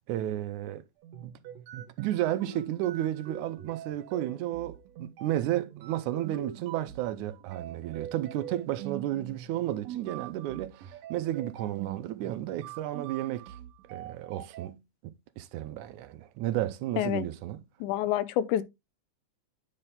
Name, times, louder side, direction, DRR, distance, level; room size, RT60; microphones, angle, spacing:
voice 1, 0.1-0.8 1.2-1.3 1.7-13.5 13.9-17.6, right 13 dB, 90° right, 2.1 m, -33 dB
sound 1, 1.0-14.7, right 10 dB, 70° right, 2.1 m, -43 dB
voice 2, 17.8-18.6, left 11 dB, 90° left, 2.1 m, -27 dB
9.8 x 4.2 x 3.5 m
omnidirectional pair, 3.5 m